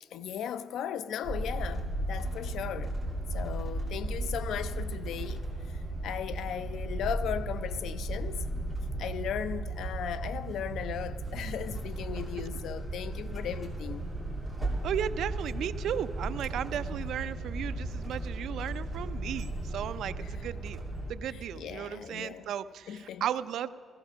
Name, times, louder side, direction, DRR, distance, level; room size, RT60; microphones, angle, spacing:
voice 1, 0.0-3.0 3.3-8.5 9.0-14.1 16.7-17.1 20.2-20.4 21.3-22.5 22.9-23.3, left 9 dB, 85° left, 0.5 m, -37 dB
sound 1, 1.2-21.1, right 1 dB, 5° left, 2.7 m, -35 dB
sound 2, 1.6-20.3, right 4 dB, 45° right, 0.8 m, -50 dB
voice 2, 14.8-20.8 21.1-23.7, right 9 dB, 80° right, 0.4 m, -35 dB
15.5 x 14.5 x 6.2 m
cardioid pair, 150°, 0 cm